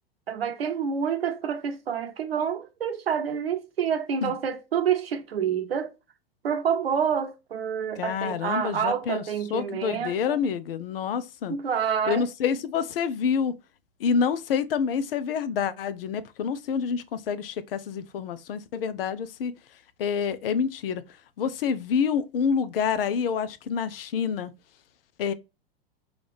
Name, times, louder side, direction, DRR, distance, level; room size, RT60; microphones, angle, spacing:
voice 1, 0.3-5.9 6.4-10.4 11.5-12.3, right 7 dB, 85° right, 0.8 m, -28 dB
voice 2, 8.0-9.2 9.5-11.5 12.1-13.5 14.0-19.5 20.0-21.0 21.4-24.5 25.2-25.3, left 6 dB, 70° left, 0.6 m, -27 dB
4.9 x 2.4 x 3.4 m
hypercardioid pair, 100°, 29 cm